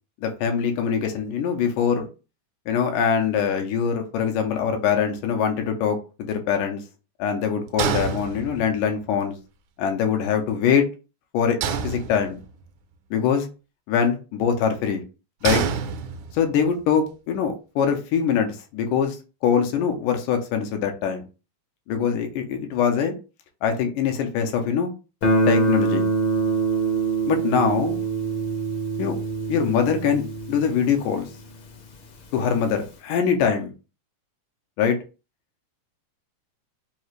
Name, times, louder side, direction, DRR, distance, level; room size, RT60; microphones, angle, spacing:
voice 1, 0.2-2.1 2.7-6.8 7.2-9.3 9.8-10.9 11.3-12.4 13.1-13.5 13.9-15.0 15.4-15.6 16.3-19.2 19.4-21.2 21.9-23.1 23.6-24.9 25.5-26.1 27.3-28.0 29.0-29.2 29.5-31.3 32.3-33.7 34.8-35.0, left 7 dB, 90° left, 5 dB, 2.3 m, -23 dB
sound 1, 7.8-8.9 11.6-12.6 15.4-16.6, right 7 dB, 80° right, 2.0 m, -27 dB
Guitar, 25.2-31.9, right 3 dB, 75° left, 1.2 m, -25 dB
5.3 x 2.4 x 3.1 m, 0.33 s
omnidirectional pair, 3.6 m